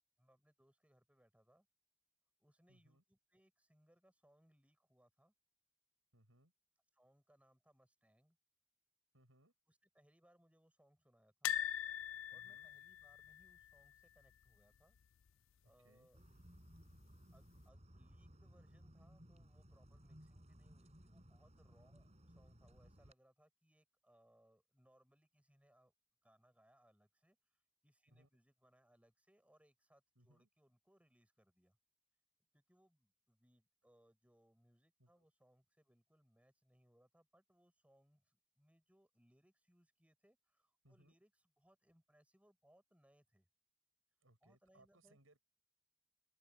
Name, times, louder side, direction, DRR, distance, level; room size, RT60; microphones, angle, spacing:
voice 1, 0.2-1.7 2.4-5.3 6.9-8.4 9.7-11.5 12.3-15.0 15.6-16.2 17.3-25.9 26.2-31.8 32.5-43.5 44.4-45.2, equal, 5° right, 6.3 m, -73 dB
voice 2, 2.7-3.0 6.1-6.5 9.1-9.5 12.3-12.7 15.6-16.1 21.7-22.1 28.1-28.3 30.1-30.5 35.0-35.3 40.8-41.1 44.2-45.4, right 1 dB, 90° right, 8.0 m, -70 dB
sound 1, 11.4-14.5 14.8-15.0 15.2-15.3 16.6-17.1 17.6-17.7, left 10 dB, 80° left, 0.5 m, -43 dB
sound 2, 16.1-23.1, equal, 35° right, 6.3 m, -61 dB
open air
head